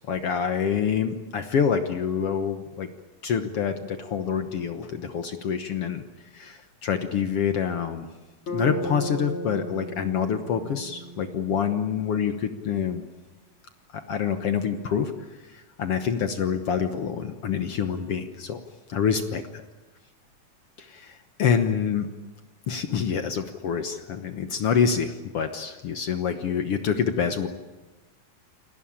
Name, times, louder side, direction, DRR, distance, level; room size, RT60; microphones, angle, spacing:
voice 1, 0.1-2.9 3.2-6.0 6.3-8.1 8.5-13.0 13.9-15.1 15.5-18.6 18.9-19.4 20.8-22.1 22.7-27.5, left 7 dB, 60° left, 8 dB, 1.7 m, -26 dB
Bass guitar, 8.5-12.5, right 1 dB, 40° left, 3.7 m, -36 dB
28.5 x 19.0 x 8.7 m, 1.2 s
omnidirectional pair, 3.8 m